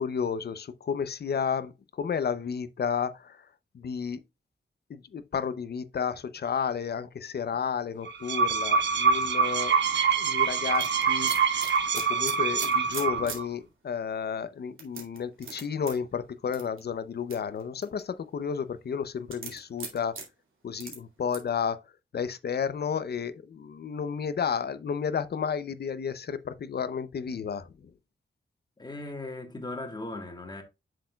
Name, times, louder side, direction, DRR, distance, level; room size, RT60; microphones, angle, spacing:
voice 1, 0.0-1.7 2.0-3.4 3.7-4.2 4.9-9.8 10.2-11.3 11.9-20.1 20.6-21.8 22.1-27.9, left 7 dB, 55° left, 0.6 m, -32 dB
sound 1, 8.1-13.4, right 5 dB, 65° right, 0.9 m, -25 dB
sound 2, 10.7-13.4 13.9-14.0 14.8-15.9 16.5-16.8 17.3-18.0 19.3-20.2 20.8-20.9 21.3-21.5, right 5 dB, 90° right, 2.4 m, -38 dB
voice 2, 28.8-30.6, left 2 dB, 20° left, 1.5 m, -38 dB
7.7 x 6.5 x 2.3 m
wide cardioid pair, 140°, 20 cm